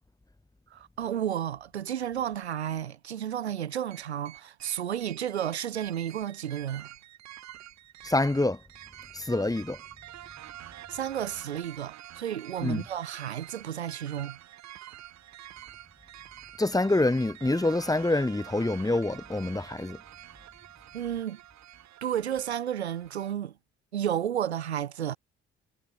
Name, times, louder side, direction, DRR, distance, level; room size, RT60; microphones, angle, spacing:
voice 1, 0.7-6.9 10.9-14.4 20.9-21.4 22.0-23.5 23.9-25.2, right 10 dB, 85° right, 0.8 m, -32 dB
sound 1, 3.9-23.3, right 13 dB, 55° right, 3.1 m, -48 dB
voice 2, 8.0-8.6 9.1-9.8 12.6-12.8 16.6-20.0, left 2 dB, 10° left, 1.8 m, -26 dB
figure-of-eight pair, 45°, 32 cm